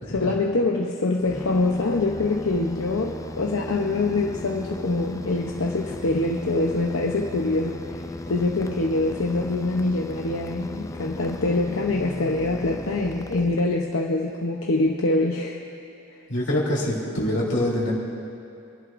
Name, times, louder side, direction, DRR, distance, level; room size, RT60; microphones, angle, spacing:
voice 1, 0.1-8.0 8.3-15.6, left 2 dB, 80° left, -1 dB, 0.8 m, -24 dB
sound 1, 1.2-14.0, left 2 dB, 15° left, 0.3 m, -36 dB
voice 2, 16.3-17.9, left 1 dB, 55° left, -4 dB, 3.1 m, -25 dB
27.5 x 11.0 x 2.6 m, 2.6 s
head